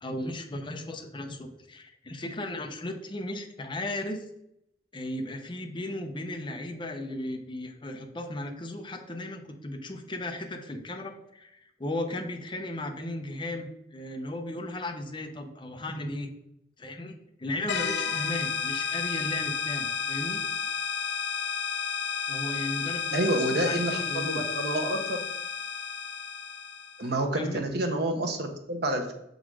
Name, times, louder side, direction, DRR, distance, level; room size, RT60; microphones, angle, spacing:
voice 1, 0.0-4.2 4.9-16.3 16.8-17.1 17.4-20.4 22.3-24.4 27.3-27.6, left 1 dB, 30° left, 4 dB, 0.8 m, -36 dB
sound 1, 17.7-27.1, left 7 dB, 85° left, 0.5 m, -32 dB
voice 2, 23.1-25.2 27.0-29.1, right 1 dB, 65° right, 5 dB, 1.0 m, -28 dB
6.3 x 4.0 x 4.8 m, 0.79 s
head